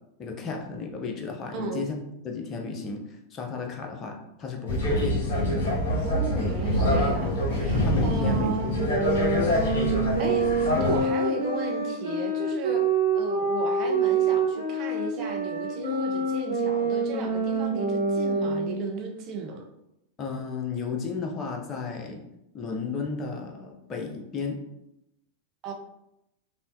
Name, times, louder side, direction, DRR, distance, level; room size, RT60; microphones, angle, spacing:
voice 1, 0.2-2.0 2.2-5.2 7.4-7.5 7.8-9.1 9.7-10.0 20.2-22.2 22.5-24.6, left 5 dB, 30° left, 2 dB, 0.7 m, -33 dB
voice 2, 1.5-1.8 6.0-9.0 10.2-12.8 13.1-19.6 25.6-25.7, right 3 dB, 35° right, 2 dB, 0.6 m, -35 dB
sound 1, 4.7-11.0, left 1 dB, 55° left, 1.2 m, -25 dB
sound 2, 8.9-18.8, right 3 dB, 80° right, 1.1 m, -26 dB
5.3 x 2.2 x 2.7 m, 0.85 s
figure-of-eight pair, 90°, 0 cm